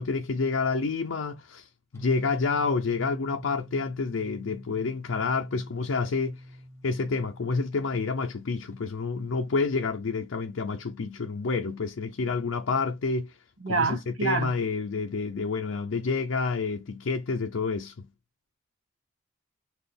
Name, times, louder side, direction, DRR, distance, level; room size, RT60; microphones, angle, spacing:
voice 1, 0.0-6.4 6.8-13.4 13.7-18.1, left 4 dB, 70° left, 0.5 m, -29 dB
sound 1, 1.9-8.8, equal, 15° left, 0.6 m, -44 dB
voice 2, 13.6-14.6, right 4 dB, 75° right, 0.9 m, -27 dB
4.1 x 2.4 x 3.3 m
head